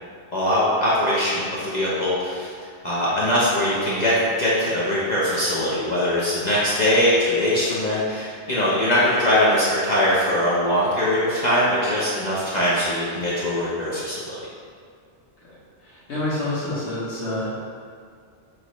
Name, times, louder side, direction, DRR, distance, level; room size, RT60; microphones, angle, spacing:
voice 1, 0.3-2.5 2.8-4.1 4.4-14.5, left 1 dB, 45° left, -8 dB, 0.8 m, -21 dB
voice 2, 15.8-17.6, left 1 dB, 90° left, -10 dB, 1.5 m, -28 dB
6.1 x 2.7 x 3.0 m, 2.1 s
omnidirectional pair, 1.1 m